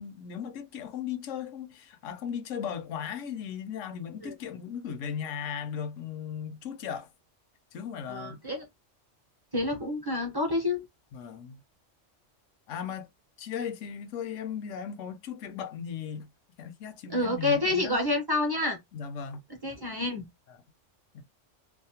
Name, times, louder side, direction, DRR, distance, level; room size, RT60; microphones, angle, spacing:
voice 1, 0.0-7.1 7.7-8.4 11.1-11.6 12.7-13.1 13.4-16.3 16.6-18.0 18.9-19.4 20.5-20.6 21.1-21.2, left 8 dB, 80° left, 0.9 m, -37 dB
voice 2, 8.1-8.6 9.5-10.8 17.1-18.8 19.6-20.2, left 2 dB, 25° right, 0.5 m, -28 dB
2.7 x 2.0 x 2.8 m
omnidirectional pair, 1.3 m